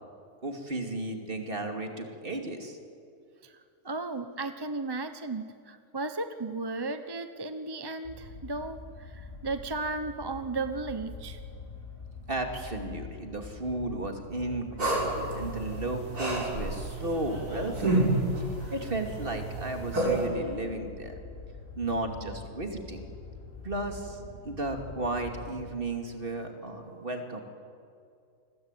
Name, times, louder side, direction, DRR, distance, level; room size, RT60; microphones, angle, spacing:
voice 1, 0.4-2.8 12.3-18.1 18.4-21.1 21.8-23.1 23.6-27.4, right 2 dB, 35° right, 4 dB, 2.8 m, -34 dB
voice 2, 3.8-11.4, right 3 dB, 20° right, 9 dB, 0.8 m, -35 dB
sound 1, 8.0-25.7, left 3 dB, 35° left, 5.6 m, -45 dB
sound 2, 14.8-20.3, right 2 dB, 80° right, 6.6 m, -30 dB
29.0 x 21.5 x 9.2 m, 2.4 s
omnidirectional pair, 1.6 m